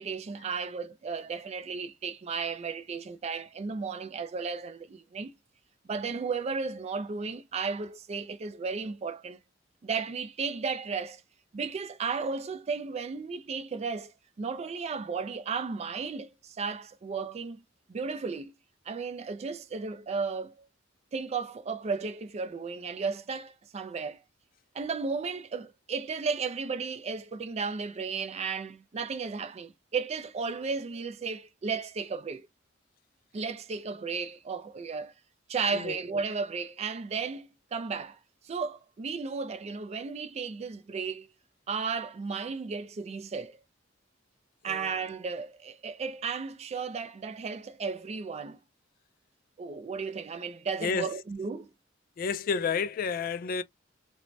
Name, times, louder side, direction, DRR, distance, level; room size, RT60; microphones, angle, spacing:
voice 1, 0.0-5.3 5.9-9.4 9.8-11.2 11.5-14.1 14.4-17.6 17.9-18.5 18.9-20.7 21.1-24.2 24.7-32.5 33.3-35.1 35.5-38.2 38.4-41.3 41.7-43.6 44.6-48.6 49.6-51.7, right 5 dB, 35° right, 0.3 m, -34 dB
voice 2, 52.2-53.6, left 5 dB, 50° left, 0.3 m, -30 dB
2.5 x 2.1 x 3.1 m
head